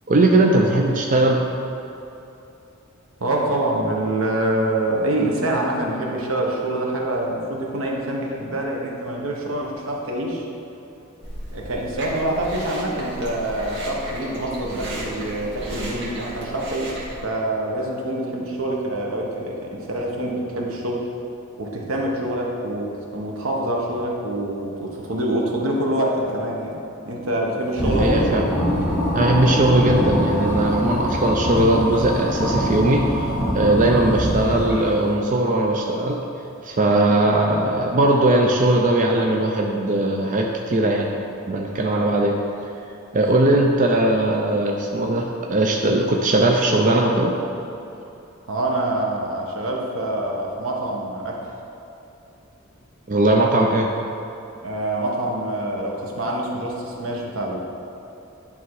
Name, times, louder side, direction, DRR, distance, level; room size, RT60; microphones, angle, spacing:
voice 1, 0.1-1.4 28.0-28.4 29.1-36.2 36.6-41.1 41.5-42.3 43.1-47.3 53.1-53.9, right 1 dB, 40° right, 0 dB, 0.5 m, -19 dB
voice 2, 3.2-10.5 11.5-21.1 21.6-26.8 27.0-28.5 43.2-43.4 48.5-51.5 54.6-57.6, right 1 dB, 80° right, -1 dB, 1.2 m, -26 dB
Chewing mastication, 11.2-17.2, right 1 dB, 60° right, 1.8 m, -34 dB
sound 1, 27.7-35.0, equal, 5° right, 1.4 m, -23 dB
11.0 x 3.6 x 4.7 m, 2.9 s
head